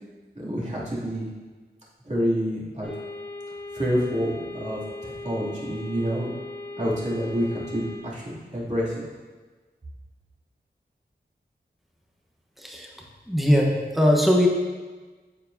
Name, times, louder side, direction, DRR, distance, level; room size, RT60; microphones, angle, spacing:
voice 1, 0.3-1.3 2.0-2.9 3.7-6.3 6.8-9.0, equal, 40° right, -8 dB, 2.7 m, -28 dB
sound 1, 2.8-8.0, left 2 dB, 20° left, 2.4 m, -38 dB
voice 2, 12.6-12.9 13.3-14.5, equal, ahead, -1 dB, 1.1 m, -20 dB
8.8 x 8.0 x 2.7 m, 1.4 s
wide cardioid pair, 80°, 18 cm